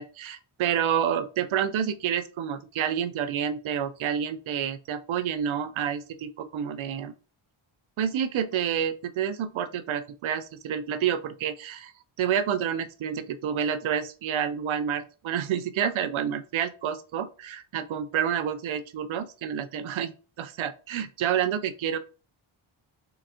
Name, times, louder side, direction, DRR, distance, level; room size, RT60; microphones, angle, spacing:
voice 1, 0.0-7.1 8.0-11.9 12.2-22.0, right 8 dB, 70° right, 0.6 m, -29 dB
4.4 x 3.7 x 2.9 m
cardioid pair, 95°, 49 cm